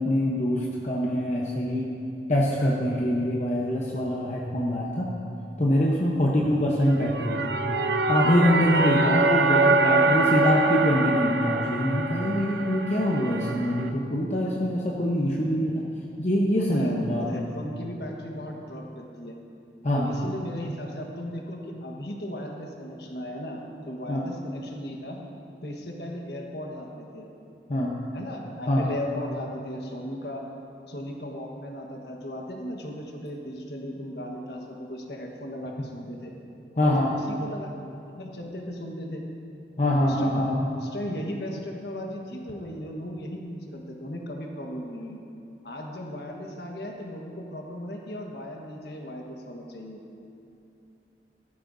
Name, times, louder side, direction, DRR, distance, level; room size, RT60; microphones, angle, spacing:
voice 1, 0.0-1.9 2.3-5.1 5.6-7.6 8.1-15.8 16.2-17.5 19.8-20.1 24.1-24.3 27.7-27.9 28.7-29.0 36.8-37.1 39.8-40.7, equal, 40° left, -3 dB, 0.9 m, -24 dB
sound 1, 6.9-13.9, right 3 dB, 80° right, 0.6 m, -24 dB
voice 2, 16.6-19.3 19.9-25.2 25.6-27.3 28.1-30.4 30.9-36.3 36.8-37.7 38.1-39.2 40.0-40.4 40.7-45.2 45.6-50.0, left 1 dB, 65° left, 0 dB, 1.4 m, -36 dB
15.0 x 13.5 x 2.7 m, 2.8 s
head